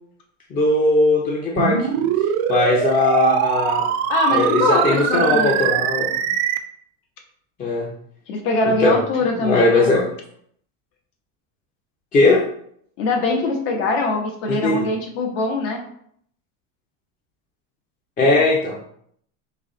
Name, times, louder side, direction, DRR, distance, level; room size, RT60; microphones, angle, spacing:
voice 1, 0.5-2.1 2.5-3.8 4.3-6.0 7.6-7.9 8.6-9.0 9.4-10.0 12.1-12.4 14.5-14.9 18.2-18.9, left 2 dB, 20° left, -2 dB, 0.5 m, -18 dB
sound 1, 1.6-6.6, right 10 dB, 85° right, 0.5 m, -22 dB
voice 2, 4.1-5.7 8.3-9.9 13.0-15.8, left 3 dB, 70° left, 2 dB, 1.1 m, -22 dB
4.0 x 3.0 x 3.7 m, 0.66 s
cardioid pair, 160°, 38 cm